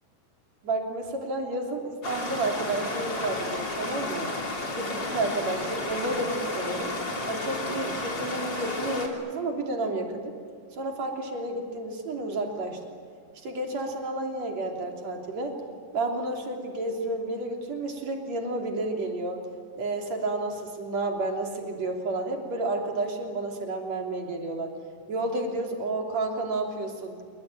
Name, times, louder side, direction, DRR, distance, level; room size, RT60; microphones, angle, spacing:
voice 1, 0.6-4.3 4.7-7.0 7.3-10.3 10.7-12.8 13.4-15.6 15.9-19.4 19.8-24.7 25.1-27.2, right 2 dB, 45° right, 2 dB, 4.2 m, -31 dB
Stream, 2.0-9.1, left 2 dB, 30° left, 3.4 m, -32 dB
27.5 x 23.0 x 9.0 m, 2.1 s
omnidirectional pair, 4.8 m